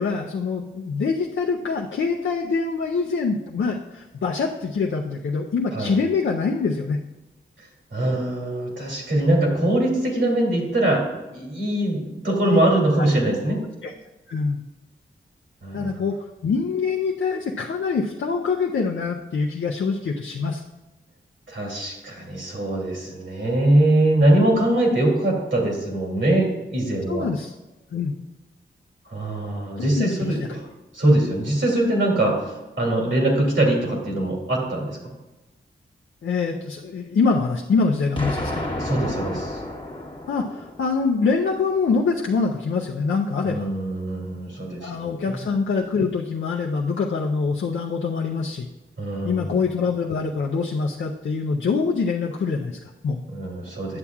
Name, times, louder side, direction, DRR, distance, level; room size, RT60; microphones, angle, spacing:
voice 1, 0.0-7.0 12.4-12.6 13.0-13.1 13.8-13.9 14.3-14.6 15.7-20.6 24.2-24.4 27.1-27.5 27.9-28.1 29.8-30.5 36.2-38.6 40.3-43.6 44.8-48.7 49.2-53.2, left 4 dB, 70° left, 1 dB, 0.5 m, -24 dB
voice 2, 7.9-11.1 11.3-13.6 15.6-15.9 21.5-27.3 29.1-30.7 30.9-35.0 38.7-39.6 43.4-44.9 45.3-45.4 49.0-49.5 53.3-54.0, right 1 dB, 65° right, -1 dB, 2.3 m, -22 dB
Explosion, 38.2-41.1, left 1 dB, 25° left, 1.1 m, -31 dB
9.6 x 7.1 x 2.3 m, 1.1 s
cardioid pair, 55°, 21 cm